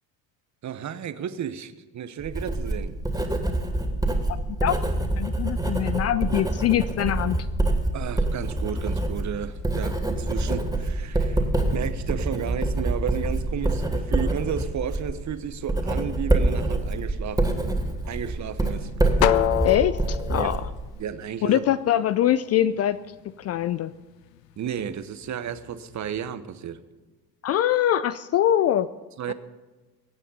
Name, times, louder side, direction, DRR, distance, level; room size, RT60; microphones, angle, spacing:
voice 1, 0.6-2.9 7.9-17.4 18.1-18.9 20.3-20.5 21.0-21.6 24.6-26.8 29.2-29.3, right 8 dB, 35° right, 13 dB, 1.1 m, -33 dB
Writing, 2.2-21.0, right 2 dB, 5° right, 2.8 m, -26 dB
voice 2, 5.2-7.4 19.6-20.6 21.4-23.0 23.4-23.9 27.4-28.9 29.3-29.4, left 11 dB, 35° left, 15 dB, 0.4 m, -23 dB
sound 1, 9.0-26.3, left 13 dB, 75° left, 0.8 m, -35 dB
23.0 x 9.1 x 5.6 m, 1.3 s
hypercardioid pair, 65°, 49 cm